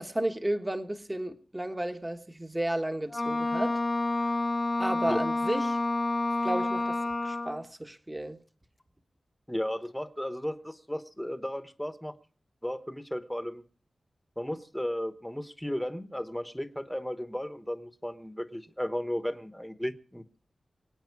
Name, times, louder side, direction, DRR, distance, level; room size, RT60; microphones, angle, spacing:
voice 1, 0.0-3.8 4.8-5.8 6.4-8.4, right 1 dB, 15° right, 7 dB, 1.2 m, -33 dB
Wind instrument woodwind instrument, 3.1-7.6, left 2 dB, 30° left, 0.9 m, -29 dB
voice 2, 9.5-12.1 12.6-13.6 14.4-20.2, equal, 5° left, 9 dB, 1.2 m, -34 dB
23.0 x 9.1 x 4.7 m, 0.42 s
wide cardioid pair, 95°, 0 cm